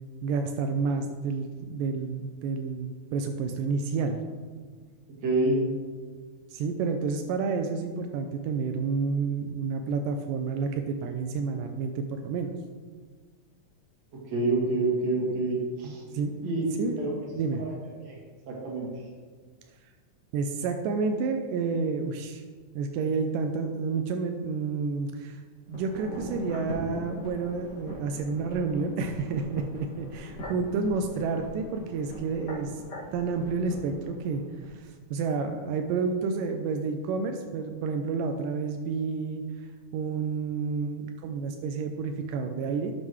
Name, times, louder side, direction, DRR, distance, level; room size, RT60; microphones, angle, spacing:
voice 1, 0.2-4.2 6.5-12.5 15.8-16.3 16.8-17.0 17.3-17.6 20.3-22.4 22.8-25.4 25.7-32.7 33.1-34.4 34.7-39.4 39.9-42.9, right 4 dB, 90° right, 5 dB, 2.2 m, -30 dB
voice 2, 5.2-5.6 14.3-16.0 16.4-16.7 17.0-17.1 17.6-17.7 18.0-18.2 18.5-18.9, right 2 dB, 55° right, -3 dB, 3.0 m, -27 dB
sound 1, 25.7-34.7 35.0-35.1, equal, 35° left, 2.5 m, -42 dB
11.5 x 7.5 x 3.2 m, 1.5 s
omnidirectional pair, 3.8 m